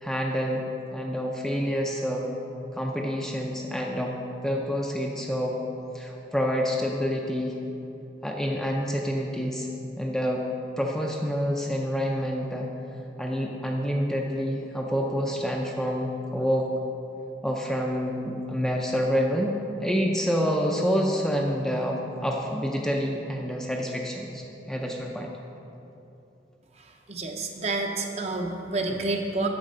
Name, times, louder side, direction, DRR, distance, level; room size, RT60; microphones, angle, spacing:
voice 1, 0.0-2.3 2.7-4.1 4.4-5.6 5.9-7.6 8.2-9.7 10.0-10.4 10.8-12.7 13.2-16.7 17.4-25.3, equal, ahead, -1 dB, 0.5 m, -27 dB
voice 2, 27.1-29.5, right 2 dB, 35° right, 2 dB, 0.8 m, -29 dB
8.7 x 7.0 x 5.4 m, 2.9 s
head